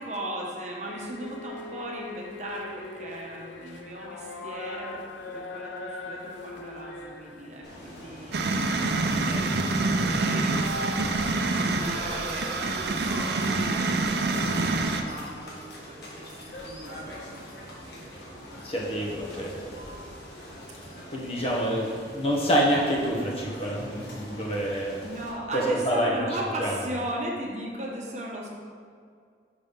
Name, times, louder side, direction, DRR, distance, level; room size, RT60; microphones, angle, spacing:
voice 1, 0.0-19.0 19.3-19.6 20.7-21.1 21.4-21.9 24.7-28.5, right 1 dB, 40° right, -1 dB, 0.9 m, -38 dB
sound 1, 0.8-8.1, left 3 dB, 85° left, 0.6 m, -41 dB
sound 2, 7.6-25.3, equal, 65° left, 1.6 m, -43 dB
sound 3, 8.3-15.0, right 3 dB, 65° right, 0.5 m, -26 dB
voice 2, 9.2-9.6 18.6-19.7 21.1-25.0 25.5-26.2 26.6-26.7, equal, 35° left, -3 dB, 1.1 m, -27 dB
5.4 x 5.3 x 5.5 m, 2.1 s
head